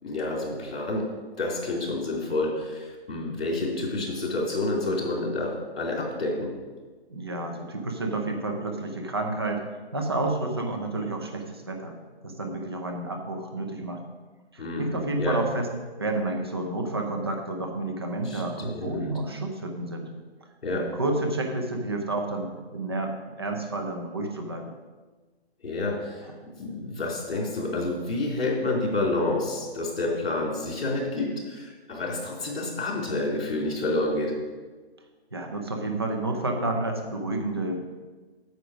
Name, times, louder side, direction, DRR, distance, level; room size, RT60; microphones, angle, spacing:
voice 1, 0.0-6.6 14.6-14.9 15.2-15.4 18.2-19.2 20.6-20.9 25.6-26.3 26.6-34.4, left 2 dB, 60° left, -1 dB, 3.4 m, -29 dB
voice 2, 7.1-9.6 9.9-12.0 12.2-14.0 14.5-15.7 16.0-20.1 20.7-24.7 35.3-37.8, right 2 dB, 25° right, 3 dB, 0.6 m, -30 dB
9.4 x 7.6 x 5.0 m, 1.3 s
hypercardioid pair, 175°, 33 cm